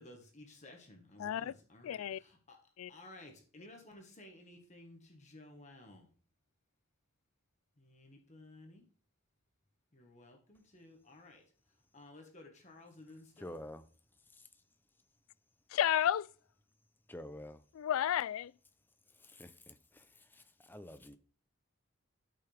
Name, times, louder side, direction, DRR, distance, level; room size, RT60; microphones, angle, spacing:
voice 1, 0.0-2.6 2.9-6.1 7.8-8.8 9.9-11.4 11.9-13.6, left 2 dB, 35° left, 1.5 m, -55 dB
voice 2, 1.2-1.5 1.8-2.2 2.8-2.9 15.7-16.3 17.8-18.5, left 10 dB, 85° left, 0.3 m, -32 dB
voice 3, 13.4-13.9 14.3-14.5 17.1-17.6 19.1-21.2, left 1 dB, 10° left, 0.6 m, -49 dB
13.0 x 5.9 x 3.4 m
head